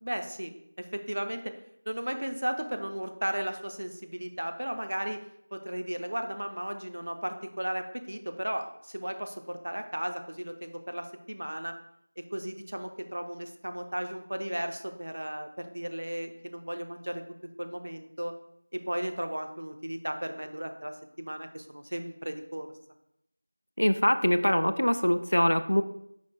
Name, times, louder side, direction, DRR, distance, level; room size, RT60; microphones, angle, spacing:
voice 1, 0.0-1.5 1.9-5.3 5.5-11.8 12.2-18.3 18.7-22.7, right 1 dB, 60° right, 6 dB, 0.5 m, -35 dB
voice 2, 23.8-25.8, equal, 85° left, 10 dB, 0.3 m, -23 dB
4.9 x 2.2 x 3.4 m, 0.76 s
figure-of-eight pair, 175°, 0 cm